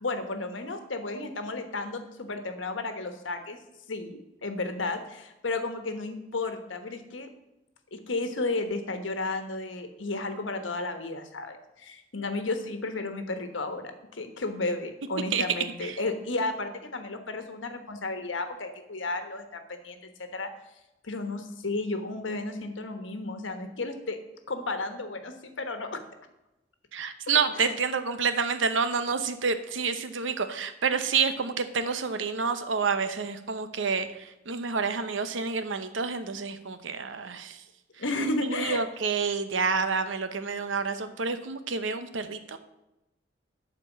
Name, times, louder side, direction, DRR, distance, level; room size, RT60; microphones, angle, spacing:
voice 1, 0.0-3.6 3.9-7.3 7.9-20.5 21.0-24.2 24.5-26.0 27.5-27.8 38.0-38.8, left 2 dB, 85° left, 7 dB, 1.2 m, -33 dB
voice 2, 26.9-34.1 34.5-37.6 38.4-42.6, right 5 dB, 80° right, 10 dB, 0.8 m, -28 dB
11.5 x 4.5 x 7.3 m, 0.95 s
head